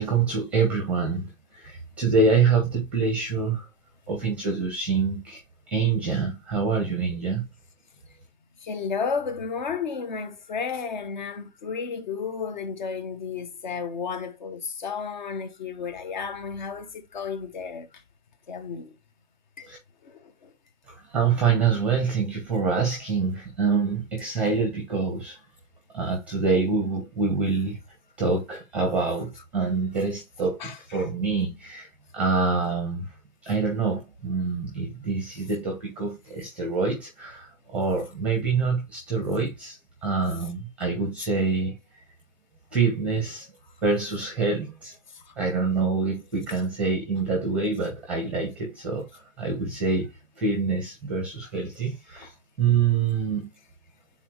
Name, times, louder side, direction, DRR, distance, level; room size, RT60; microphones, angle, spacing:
voice 1, 0.0-3.6 4.1-5.4 5.7-7.5 19.7-19.8 21.1-25.4 25.9-27.8 28.2-31.9 32.1-33.0 33.4-39.8 40.0-41.7 42.7-43.5 43.8-44.9 45.4-49.1 49.4-50.1 50.4-52.3 52.6-53.5, right 4 dB, 5° right, 0.9 m, -26 dB
voice 2, 8.6-17.9 18.5-18.9 19.6-19.7 20.1-20.5 30.6-30.8, left 5 dB, 35° left, 0.9 m, -32 dB
8.3 x 4.1 x 3.0 m
hypercardioid pair, 170°, 41 cm